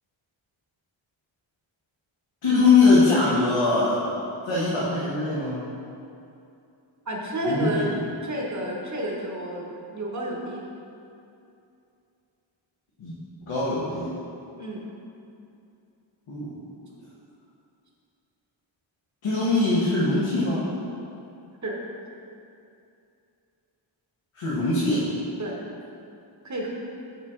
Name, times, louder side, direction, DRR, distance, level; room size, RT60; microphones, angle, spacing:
voice 1, 2.4-4.0 4.4-5.6 7.4-7.9 13.0-13.2 13.5-14.1 16.3-16.6 19.2-20.7 24.3-25.1, left 3 dB, 90° left, -8 dB, 1.3 m, -22 dB
voice 2, 7.1-10.7 14.6-14.9 21.6-21.8 25.4-25.6 26.4-26.7, right 1 dB, 35° right, -2 dB, 0.9 m, -30 dB
6.3 x 5.8 x 3.6 m, 2.6 s
wide cardioid pair, 160°, 48 cm